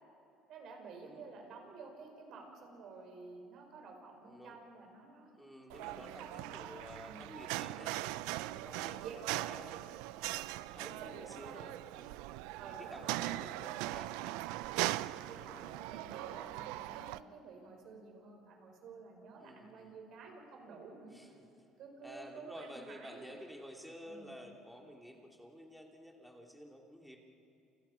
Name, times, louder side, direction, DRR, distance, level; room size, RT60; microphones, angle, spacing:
voice 1, 0.5-5.3 6.0-7.3 9.0-9.6 10.8-11.6 12.6-13.6 15.3-21.1 21.8-23.4 24.0-24.3, right 4 dB, 60° right, 2 dB, 6.3 m, -51 dB
voice 2, 4.3-4.6 5.3-7.9 8.3-9.7 10.1-12.2 12.6-14.4 15.1-16.3 19.4-19.9 21.1-21.4 22.0-27.2, equal, ahead, 1 dB, 3.1 m, -52 dB
sound 1, 5.7-17.2, right 17 dB, 85° right, 0.5 m, -40 dB
29.5 x 29.0 x 5.9 m, 2.7 s
cardioid pair, 115°, 0 cm